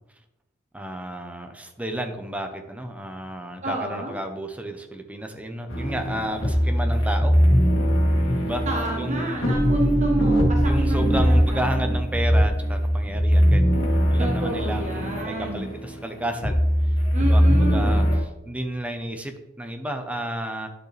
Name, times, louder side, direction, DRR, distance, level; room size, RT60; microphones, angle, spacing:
voice 1, 0.7-7.4 8.4-8.7 9.0-9.6 10.7-13.6 14.1-16.6 17.2-18.0 18.4-20.7, right 1 dB, 5° right, 5 dB, 0.8 m, -31 dB
voice 2, 3.6-4.2 8.7-11.8 14.2-15.7 17.1-18.1, right 1 dB, 40° right, 0 dB, 1.1 m, -30 dB
sound 1, 5.7-18.2, equal, 80° left, 2.3 m, -21 dB
10.5 x 6.7 x 3.3 m, 0.93 s
head